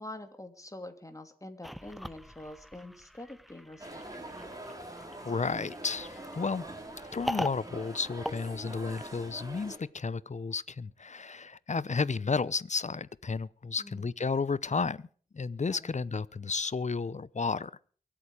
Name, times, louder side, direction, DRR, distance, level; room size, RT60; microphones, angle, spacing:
voice 1, 0.0-4.0 13.8-14.1 15.7-15.9, left 1 dB, 20° left, 2.8 m, -45 dB
sound 1, 1.6-9.3, equal, ahead, 0.7 m, -42 dB
sound 2, 3.8-9.8, right 1 dB, 25° right, 4.2 m, -44 dB
voice 2, 5.2-6.6 7.0-15.1 15.3-17.7, left 4 dB, 50° left, 0.8 m, -32 dB
24.0 x 8.7 x 4.9 m
cardioid pair, 50°, 15 cm